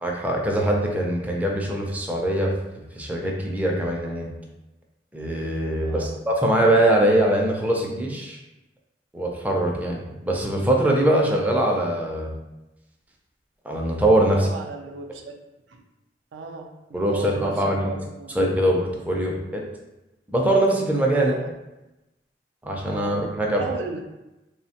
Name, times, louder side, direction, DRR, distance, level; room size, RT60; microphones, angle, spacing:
voice 1, 0.0-2.5 3.0-4.3 5.1-8.4 9.1-12.3 13.7-14.5 16.9-17.9 18.4-19.6 20.3-21.4 22.6-23.6, right 1 dB, 10° right, -1 dB, 0.4 m, -22 dB
voice 2, 5.8-6.2 14.3-15.3 15.7-15.8 16.3-18.4 19.1-19.4 21.1-21.5 22.9-23.1 23.5-24.0, right 3 dB, 80° right, 3 dB, 0.4 m, -36 dB
3.0 x 2.1 x 2.7 m, 0.98 s
head